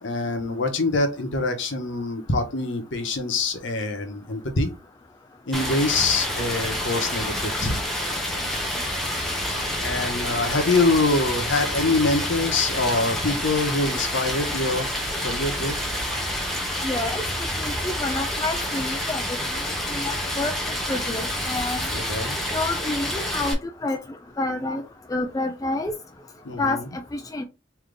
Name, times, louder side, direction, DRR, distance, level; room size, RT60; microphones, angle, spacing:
voice 1, 0.0-4.7 5.5-7.8 9.8-14.9 15.2-15.7 21.9-22.4 26.4-26.9, left 2 dB, 65° left, 6 dB, 0.9 m, -24 dB
Stream, 5.5-23.5, left 1 dB, ahead, 0.8 m, -28 dB
voice 2, 16.8-17.2 17.6-19.2 19.5-19.6 19.9-20.5 20.9-21.9 22.5-24.0 24.4-24.8 25.1-25.9 26.6-27.4, left 2 dB, 15° left, 6 dB, 0.3 m, -28 dB
3.3 x 2.8 x 3.8 m, 0.28 s
head